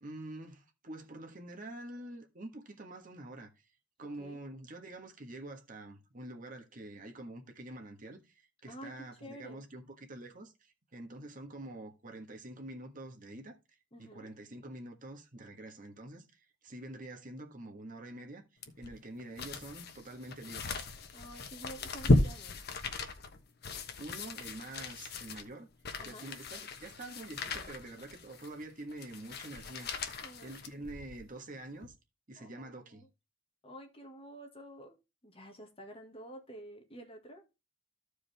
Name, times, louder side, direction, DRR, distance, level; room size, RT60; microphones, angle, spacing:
voice 1, 0.0-3.7 4.0-13.5 14.0-18.4 18.8-20.8 24.0-25.7 26.0-30.1 30.4-31.9 32.3-33.0, right 1 dB, 45° right, 1.5 m, -46 dB
voice 2, 8.7-9.6 13.9-14.3 21.1-22.6 26.0-26.3 30.2-30.6 32.4-33.1 33.6-35.0 35.2-37.4, right 1 dB, 30° left, 1.8 m, -50 dB
sound 1, 18.6-31.3 31.8-31.9, left 2 dB, 55° left, 1.2 m, -35 dB
14.5 x 4.9 x 3.4 m
head